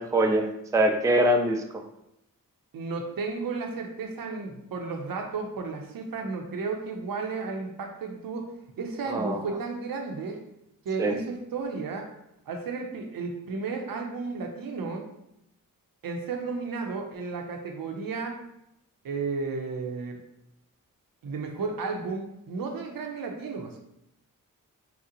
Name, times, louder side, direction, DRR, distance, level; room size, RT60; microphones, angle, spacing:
voice 1, 0.0-1.8 9.1-9.4 11.0-11.2, right 1 dB, 10° right, 4 dB, 0.3 m, -24 dB
voice 2, 2.7-8.5 8.8-10.4 10.8-12.1 12.5-15.1 16.0-18.4 19.0-20.2 21.2-23.8, right 4 dB, 75° right, 3 dB, 0.6 m, -33 dB
3.8 x 2.0 x 2.8 m, 0.81 s
cardioid pair, 55°, 34 cm